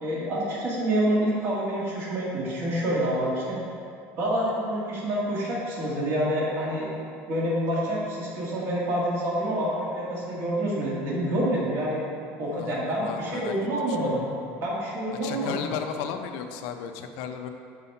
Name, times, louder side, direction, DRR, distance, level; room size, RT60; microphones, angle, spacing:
voice 1, 0.0-3.6 4.2-7.0 7.3-12.0 12.4-14.2 14.6-15.8, right 1 dB, 40° right, -5 dB, 1.7 m, -27 dB
voice 2, 12.5-13.5 13.9-14.0 15.2-17.5, left 7 dB, 65° left, 6 dB, 0.5 m, -34 dB
5.7 x 4.7 x 5.4 m, 2.4 s
cardioid pair, 165°, 6 cm